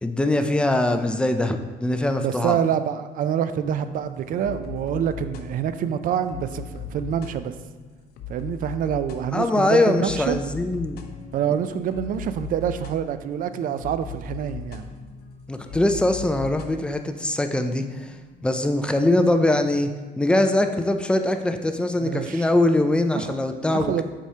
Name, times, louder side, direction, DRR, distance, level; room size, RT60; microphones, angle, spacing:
voice 1, 0.0-2.6 9.3-11.0 15.5-18.1 18.4-19.9 20.2-24.0, left 1 dB, 5° left, 7 dB, 0.4 m, -22 dB
voice 2, 2.2-7.5 8.3-10.4 11.3-14.9 22.0-22.5 23.1-24.0, right 9 dB, 55° right, 11 dB, 0.4 m, -26 dB
sound 1, 3.6-19.9, left 5 dB, 70° left, 0.6 m, -40 dB
7.2 x 4.8 x 2.8 m, 1.3 s
cardioid pair, 110°, 17 cm